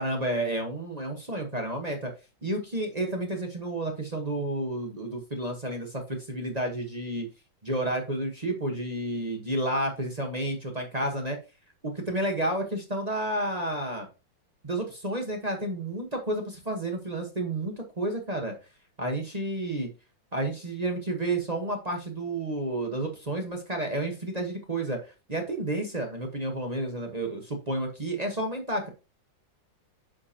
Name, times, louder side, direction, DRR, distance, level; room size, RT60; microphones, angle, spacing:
voice 1, 0.0-2.1 2.4-7.3 7.6-11.4 11.8-14.1 14.6-18.5 19.0-19.9 20.3-28.9, right 1 dB, 25° right, 3 dB, 0.9 m, -31 dB
9.4 x 5.1 x 2.8 m, 0.29 s
omnidirectional pair, 2.3 m